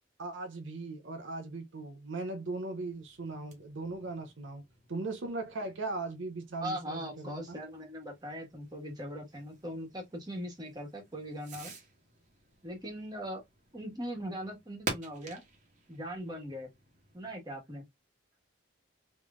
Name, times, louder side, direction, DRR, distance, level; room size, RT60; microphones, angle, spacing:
voice 1, 0.2-4.6 4.9-7.6, right 3 dB, 75° right, 0.6 m, -38 dB
Fireworks, 2.8-17.4, right 3 dB, 35° right, 1.2 m, -48 dB
voice 2, 6.6-11.7 12.6-13.4 13.7-15.4 15.9-16.7 17.1-17.8, equal, 20° right, 1.5 m, -40 dB
3.6 x 3.1 x 2.4 m
head